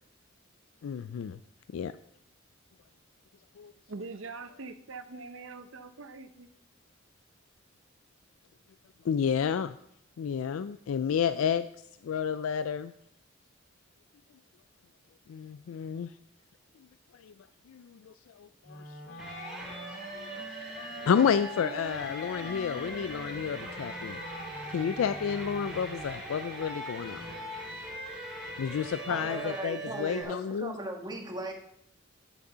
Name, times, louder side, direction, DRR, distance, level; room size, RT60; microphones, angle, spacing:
voice 1, 0.8-1.4 1.7-1.9 3.6-3.7 9.0-9.7 10.2-11.7 12.0-12.9 15.3-16.1 17.1-17.3 17.7-18.8 19.1-19.2 19.7-19.8 20.1-20.3 21.0-24.2 24.7-27.3 28.6-30.7, left 7 dB, 90° left, 13 dB, 0.3 m, -30 dB
voice 2, 3.9-6.5, right 3 dB, 75° right, 10 dB, 0.8 m, -43 dB
Wind instrument woodwind instrument, 18.6-26.1, left 2 dB, 55° left, 1.8 m, -45 dB
sound 1, 19.2-30.2, right 1 dB, 5° right, 3.6 m, -41 dB
voice 3, 29.1-31.5, right 1 dB, 20° right, 2 dB, 1.5 m, -37 dB
10.5 x 6.6 x 5.5 m, 0.75 s
head